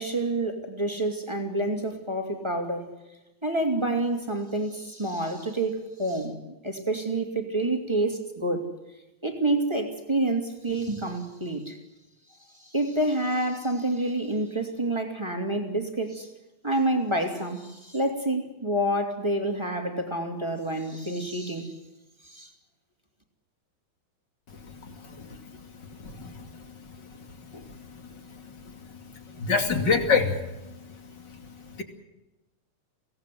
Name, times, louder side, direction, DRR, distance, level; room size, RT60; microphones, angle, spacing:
voice 1, 0.0-2.9 3.4-6.4 6.6-8.7 9.2-11.8 12.5-16.3 16.6-21.7 22.2-22.5, right 1 dB, 10° right, 3 dB, 2.6 m, -28 dB
voice 2, 29.4-30.4, left 5 dB, 35° left, 5 dB, 2.9 m, -23 dB
24.0 x 17.5 x 7.8 m, 1.0 s
omnidirectional pair, 3.5 m